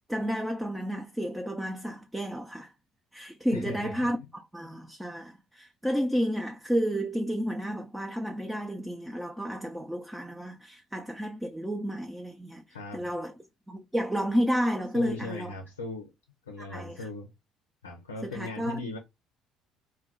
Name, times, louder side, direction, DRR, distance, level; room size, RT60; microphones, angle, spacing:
voice 1, 0.1-2.7 3.1-13.3 13.7-15.5 16.7-17.1 18.2-18.9, equal, 5° right, 0.5 m, -31 dB
voice 2, 3.5-4.1 12.7-13.1 14.9-16.1 16.5-17.3 17.8-19.0, left 3 dB, 90° left, 0.5 m, -38 dB
2.3 x 2.2 x 3.6 m
hypercardioid pair, 55°, 0 cm